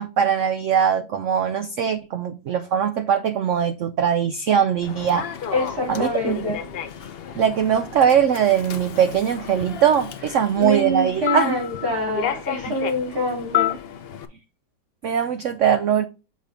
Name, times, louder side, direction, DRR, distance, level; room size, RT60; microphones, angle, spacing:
voice 1, 0.0-5.3 5.9-6.6 7.3-11.6 12.7-12.8 15.0-16.0, right 8 dB, 90° right, 0.6 m, -21 dB
Human voice / Subway metro underground, 4.8-14.3, left 10 dB, 90° left, 0.5 m, -31 dB
voice 2, 5.5-6.6 10.6-13.8, left 1 dB, 60° right, 3.7 m, -26 dB
6.5 x 5.0 x 3.4 m
omnidirectional pair, 1.9 m